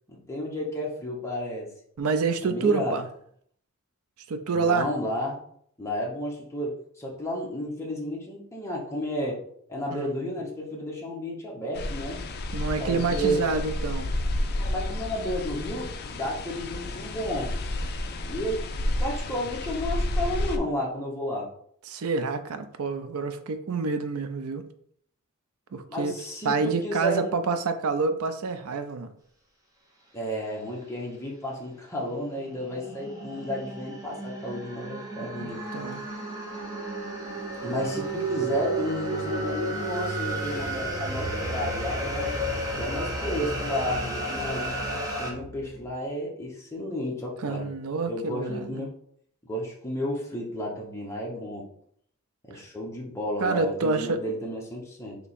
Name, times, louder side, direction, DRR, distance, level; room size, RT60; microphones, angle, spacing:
voice 1, 0.1-1.7 2.4-3.0 4.5-5.4 5.8-9.4 9.7-12.2 12.8-13.4 14.5-17.6 18.3-18.7 19.0-21.5 25.9-27.4 30.1-35.6 37.6-42.3 42.7-44.7 45.2-47.7 48.1-48.9 49.4-51.7 52.5-55.2, equal, 15° left, -3 dB, 0.9 m, -32 dB
voice 2, 2.0-3.1 4.3-4.9 9.9-10.1 12.5-14.1 21.9-24.6 25.7-26.2 26.4-29.1 35.4-36.0 47.4-48.8 52.5-52.6 53.4-54.2, right 4 dB, 85° right, 10 dB, 0.5 m, -28 dB
sound 1, 11.8-20.6, left 1 dB, 45° left, 0.4 m, -31 dB
sound 2, 32.1-45.3, right 1 dB, 15° right, 0.8 m, -33 dB
sound 3, 35.5-45.9, right 1 dB, 60° right, 1.4 m, -37 dB
3.4 x 2.9 x 4.2 m, 0.66 s
head